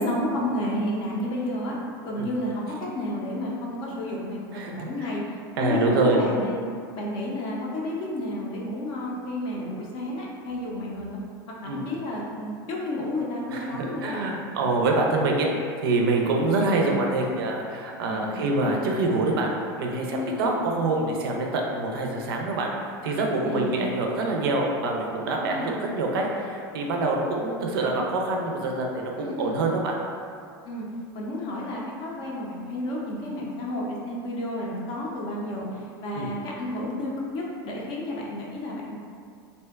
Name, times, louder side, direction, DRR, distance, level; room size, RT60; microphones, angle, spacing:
voice 1, 0.0-1.8 2.0-5.2 5.6-6.6 6.9-11.2 11.6-14.3 18.0-18.6 20.1-20.5 23.4-23.9 25.4-25.7 29.2-29.6 30.6-30.9 31.1-39.0, left 1 dB, 45° left, -3 dB, 0.5 m, -31 dB
voice 2, 4.5-4.9 5.6-6.2 11.7-11.8 13.5-15.5 15.8-19.5 19.8-22.7 23.0-29.9 36.1-36.3, right 2 dB, 75° right, 0 dB, 0.4 m, -25 dB
2.6 x 2.1 x 2.2 m, 2.3 s
hypercardioid pair, 110°, 12 cm